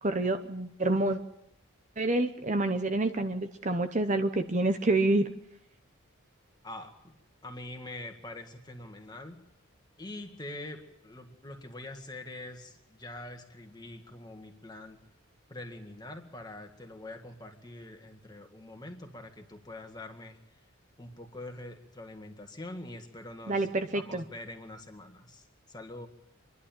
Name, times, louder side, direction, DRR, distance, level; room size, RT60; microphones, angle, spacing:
voice 1, 0.0-1.2 2.0-5.3 23.5-24.2, right 2 dB, 35° right, 8 dB, 0.8 m, -28 dB
voice 2, 6.6-7.1 7.4-9.4 10.0-15.0 15.5-20.4 21.0-23.7 23.9-26.1, left 1 dB, 20° left, 5 dB, 1.8 m, -44 dB
26.0 x 11.5 x 9.0 m, 0.83 s
head